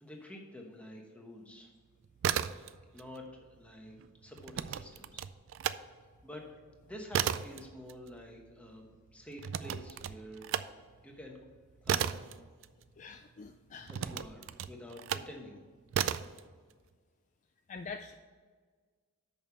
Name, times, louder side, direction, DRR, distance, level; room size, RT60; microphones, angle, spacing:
voice 1, 0.0-1.7 2.9-4.0 4.2-5.2 6.2-6.4 6.8-8.8 9.1-10.5 11.0-11.4 11.8-12.2 13.9-15.6, left 1 dB, 5° left, 1 dB, 1.1 m, -48 dB
sound 1, 2.0-3.0 3.3-5.8 6.2-13.2 13.9-15.3 15.9-16.4, right 9 dB, 60° right, 0.3 m, -35 dB
voice 2, 13.0-14.0 17.7-18.1, left 4 dB, 35° left, 6 dB, 0.3 m, -45 dB
6.4 x 5.4 x 6.9 m, 1.5 s
head